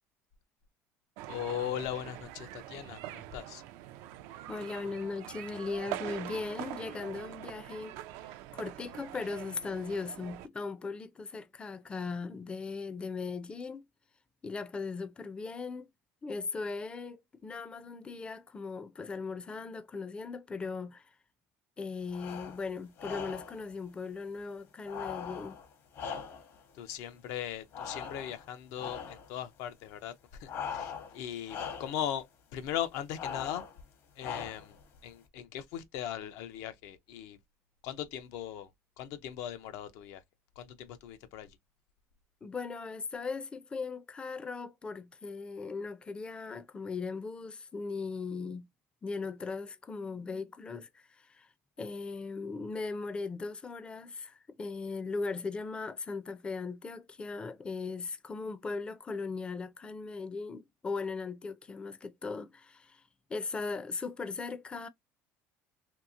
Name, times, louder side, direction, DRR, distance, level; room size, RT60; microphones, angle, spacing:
sound 1, 1.2-10.5, right 14 dB, 80° right, 0.4 m, -44 dB
voice 1, 1.3-3.6 26.7-32.3 32.5-33.6 34.2-34.8 35.0-37.4 37.8-38.7 39.0-40.2 40.6-41.6, left 10 dB, 75° left, 0.6 m, -39 dB
voice 2, 4.5-8.0 8.5-13.8 14.4-15.9 16.2-21.1 21.8-25.6 42.4-48.7 49.0-51.5 51.8-63.0 63.3-64.9, left 4 dB, 20° left, 0.4 m, -38 dB
sound 2, 22.1-22.6 23.0-23.6 24.8-26.6 27.7-28.5 28.8-29.3 30.5-31.2 31.5-32.0 33.2-33.8 34.2-34.8, left 7 dB, 55° left, 1.0 m, -40 dB
2.8 x 2.7 x 2.5 m
cardioid pair, 120°, 5 cm